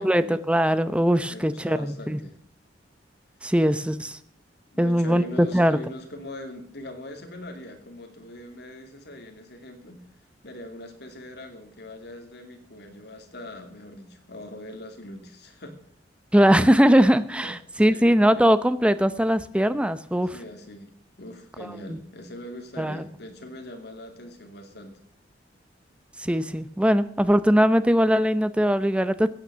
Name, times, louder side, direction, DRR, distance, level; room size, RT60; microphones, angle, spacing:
voice 1, 0.0-2.2 3.4-4.2 4.8-5.8 16.3-20.3 21.9-22.0 22.8-23.0 26.2-29.3, equal, 5° right, 13 dB, 0.7 m, -20 dB
voice 2, 1.3-2.4 4.7-10.0 10.4-15.8 17.4-18.1 20.3-20.9 21.2-25.0, left 1 dB, 60° left, 5 dB, 2.6 m, -41 dB
14.5 x 9.0 x 6.8 m, 0.66 s
head